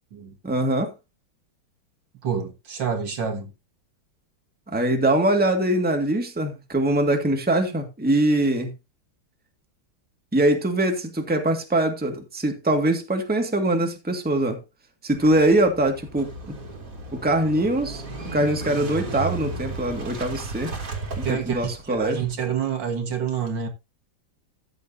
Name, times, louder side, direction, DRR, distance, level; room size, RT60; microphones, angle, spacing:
voice 1, 0.4-0.9 4.7-8.7 10.3-14.6 15.0-16.5 17.1-18.0 18.3-20.7 21.2-22.2, right 1 dB, 5° right, 1.7 m, -22 dB
voice 2, 2.2-3.5 21.2-23.7, right 7 dB, 60° right, 2.2 m, -28 dB
Motorcycle / Engine starting, 15.1-22.3, right 3 dB, 40° right, 2.7 m, -35 dB
13.5 x 9.2 x 2.7 m
omnidirectional pair, 2.4 m